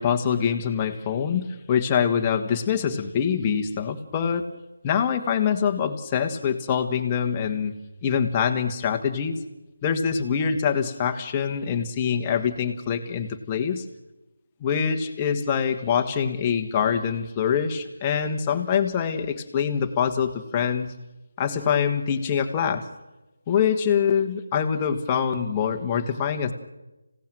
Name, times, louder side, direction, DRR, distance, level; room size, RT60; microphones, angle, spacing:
voice 1, 0.0-4.5 4.8-7.7 8.0-9.4 9.8-13.8 14.6-20.9 21.4-22.9 23.5-26.5, left 7 dB, 15° left, 4 dB, 1.4 m, -24 dB
26.5 x 17.0 x 9.1 m, 1.0 s
figure-of-eight pair, 170°, 0 cm